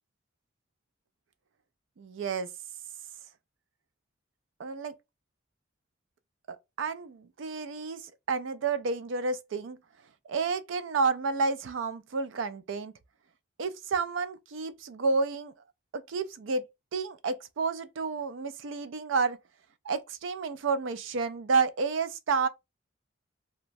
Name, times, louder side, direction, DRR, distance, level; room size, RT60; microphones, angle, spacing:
voice 1, 2.0-2.5 4.6-4.9 6.5-9.8 10.3-12.9 13.6-15.5 15.9-16.6 16.9-19.4 19.9-22.5, right 4 dB, 85° right, 0.4 m, -30 dB
3.0 x 2.2 x 2.6 m
head